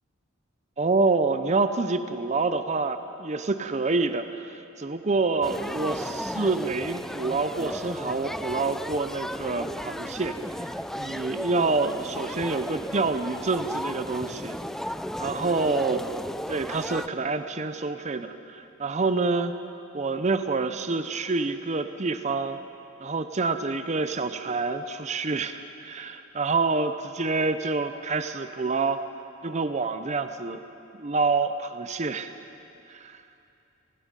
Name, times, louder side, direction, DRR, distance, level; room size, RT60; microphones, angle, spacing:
voice 1, 0.8-10.7 11.0-14.5 15.2-16.0 16.5-19.5 19.9-22.6 23.0-29.0 29.4-30.6 31.0-32.3 32.9-33.2, right 3 dB, 35° right, 9 dB, 0.7 m, -27 dB
sound 1, 5.4-17.1, equal, ahead, 0.4 m, -35 dB
29.5 x 19.5 x 5.3 m, 2.7 s
head